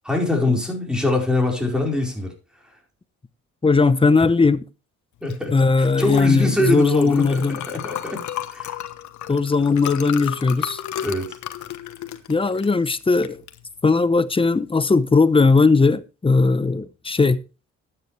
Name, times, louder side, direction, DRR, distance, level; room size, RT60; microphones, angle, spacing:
voice 1, 0.0-2.3 5.2-8.2 8.5-8.8 11.0-11.4, left 2 dB, 5° right, 4.7 m, -23 dB
voice 2, 3.6-4.6 5.5-7.6 9.3-10.8 12.3-13.4 13.8-17.4, left 4 dB, 20° left, 0.8 m, -18 dB
Liquid, 5.2-15.4, left 11 dB, 70° left, 1.2 m, -34 dB
12.5 x 9.3 x 3.3 m
cardioid pair, 90°, 30 cm